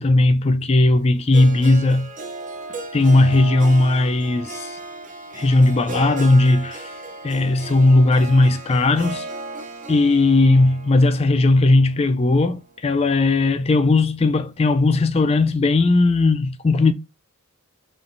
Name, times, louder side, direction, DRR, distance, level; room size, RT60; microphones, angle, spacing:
voice 1, 0.0-2.1 2.9-4.8 5.3-6.9 7.2-9.3 9.9-16.9, left 2 dB, 25° left, 0.3 m, -17 dB
Harp, 1.3-13.5, right 2 dB, 35° right, 0.5 m, -36 dB
5.0 x 3.2 x 2.5 m
head